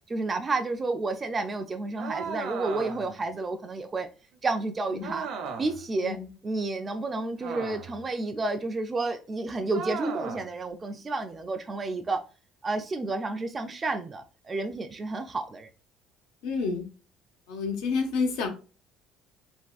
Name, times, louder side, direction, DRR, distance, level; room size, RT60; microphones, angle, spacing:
voice 1, 0.1-4.1 4.4-5.3 5.6-6.2 6.4-12.2 12.6-15.7, right 3 dB, 25° right, 0.3 m, -31 dB
sound 1, 2.0-3.2 5.0-5.8 7.4-8.1 9.7-10.5, right 5 dB, 65° right, 0.6 m, -36 dB
voice 2, 16.4-16.8 17.5-18.5, left 4 dB, 85° left, 0.8 m, -29 dB
3.5 x 2.3 x 2.4 m
cardioid pair, 120°, 0 cm